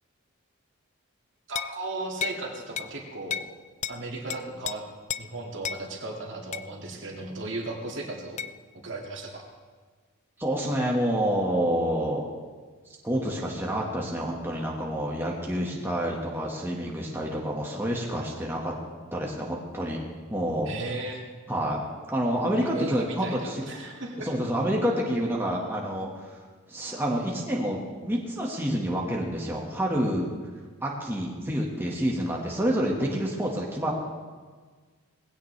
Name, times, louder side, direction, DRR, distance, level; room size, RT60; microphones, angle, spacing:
voice 1, 1.5-3.5 3.9-4.8 5.2-8.4 8.8-9.5 20.7-21.2 22.5-24.3, right 2 dB, 55° right, 0 dB, 2.3 m, -36 dB
sound 1, 1.6-1.8 2.2-2.4 2.8-2.9 3.3-3.5 3.8-4.0 4.3-4.8 5.1-5.3 5.6-5.8 6.5-6.7 8.4-8.5, left 9 dB, 30° left, 0.3 m, -32 dB
voice 2, 10.4-12.3 13.0-18.7 19.1-20.0 20.3-20.7 21.5-21.8 22.1-23.6 24.2-26.4 26.7-30.3 30.8-33.9, equal, 10° right, -3 dB, 1.6 m, -28 dB
19.5 x 16.0 x 3.4 m, 1.5 s
head